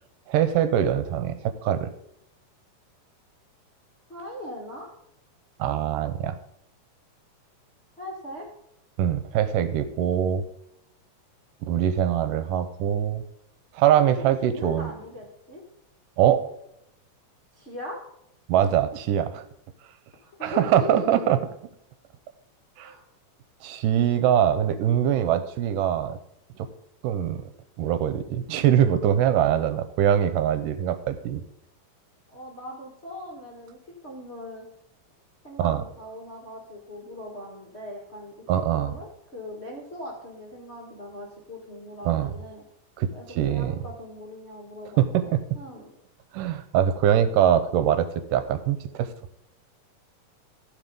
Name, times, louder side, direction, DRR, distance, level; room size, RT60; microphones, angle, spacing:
voice 1, 0.3-1.9 5.6-6.4 9.0-10.4 11.6-13.2 13.7-14.9 16.2-16.4 18.5-19.4 20.4-21.4 22.8-22.9 23.6-26.2 26.6-26.7 27.0-27.4 27.8-31.4 35.6-35.8 38.5-38.9 42.1-42.3 43.0-43.8 45.0-45.4 46.3-49.1, right 10 dB, 80° right, 11 dB, 2.3 m, -23 dB
voice 2, 4.1-4.9 8.0-8.5 14.4-15.6 17.5-18.0 20.2-21.2 22.8-23.0 32.3-34.7 35.4-42.6 43.1-45.9, left 1 dB, 30° left, -3 dB, 1.2 m, -40 dB
14.5 x 4.9 x 5.3 m, 0.77 s
omnidirectional pair, 3.8 m